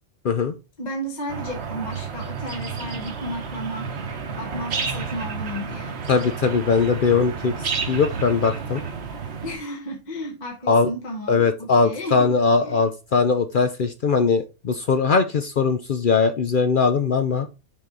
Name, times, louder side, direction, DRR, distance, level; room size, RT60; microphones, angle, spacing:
voice 1, 0.8-3.9 4.4-6.0 9.4-12.3 12.6-12.9, equal, 35° left, 1.3 m, -33 dB
sound 1, 1.3-9.6, right 5 dB, 55° right, 1.2 m, -31 dB
voice 2, 6.1-7.5 7.9-8.8 10.7-10.9 11.3-17.5, left 5 dB, 55° left, 0.6 m, -20 dB
6.0 x 4.8 x 3.8 m
omnidirectional pair, 1.4 m